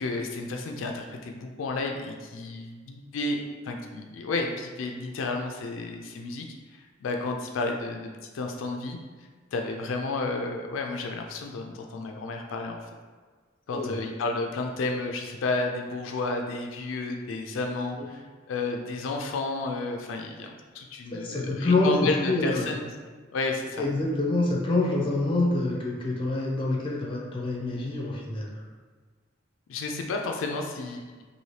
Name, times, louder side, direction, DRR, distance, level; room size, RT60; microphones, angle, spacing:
voice 1, 0.0-6.5 6.7-9.0 9.5-12.8 13.7-22.8 23.3-23.8 29.7-31.2, left 3 dB, 85° left, 2 dB, 0.4 m, -32 dB
voice 2, 21.1-22.7 23.8-28.5, left 2 dB, 25° left, -2 dB, 0.6 m, -26 dB
2.8 x 2.6 x 3.1 m, 1.5 s
head